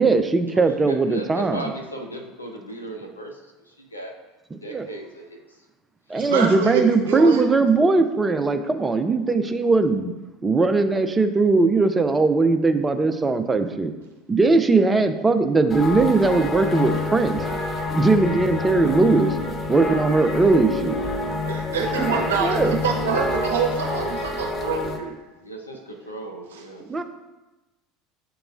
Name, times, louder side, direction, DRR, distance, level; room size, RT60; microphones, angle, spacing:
voice 1, 0.0-1.7 4.7-4.9 6.1-10.1 10.4-13.9 14.3-17.4 17.9-19.4 19.7-21.0 22.0-22.1 22.4-22.8 26.9-27.0, right 3 dB, 20° right, 8 dB, 0.4 m, -19 dB
voice 2, 0.5-4.2 4.6-5.7 6.1-6.2 25.4-26.9, right 1 dB, 90° left, 3 dB, 0.5 m, -37 dB
voice 3, 6.1-7.4 21.5-25.1, right 5 dB, 75° right, 0 dB, 0.7 m, -26 dB
sound 1, 15.7-25.0, left 3 dB, 25° left, 0.6 m, -27 dB
7.5 x 2.9 x 2.4 m, 1.1 s
figure-of-eight pair, 70°, 0 cm